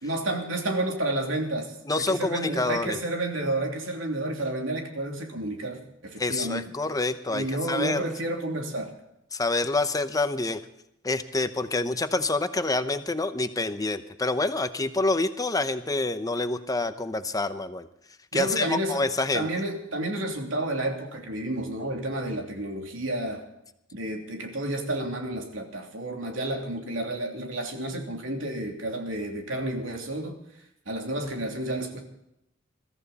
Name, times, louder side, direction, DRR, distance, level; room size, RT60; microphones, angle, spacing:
voice 1, 0.0-6.6 7.3-8.9 18.3-19.0 19.3-23.4 23.9-30.4 30.9-32.0, right 1 dB, 90° right, 2 dB, 3.1 m, -30 dB
voice 2, 1.9-3.0 6.2-8.1 9.3-10.6 11.0-17.9 18.3-19.5, left 2 dB, 20° left, 10 dB, 0.8 m, -27 dB
22.0 x 14.0 x 4.2 m, 0.81 s
head